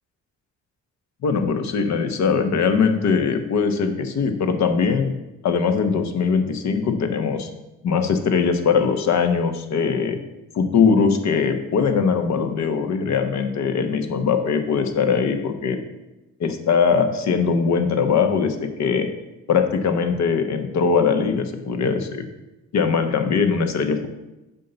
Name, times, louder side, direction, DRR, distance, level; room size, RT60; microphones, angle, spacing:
voice 1, 1.2-5.1 5.4-7.5 7.8-10.2 10.5-15.8 16.4-19.1 19.5-22.2 22.7-24.1, left 5 dB, 65° left, 7 dB, 1.1 m, -21 dB
7.5 x 4.1 x 6.8 m, 0.99 s
cardioid pair, 90°, 30 cm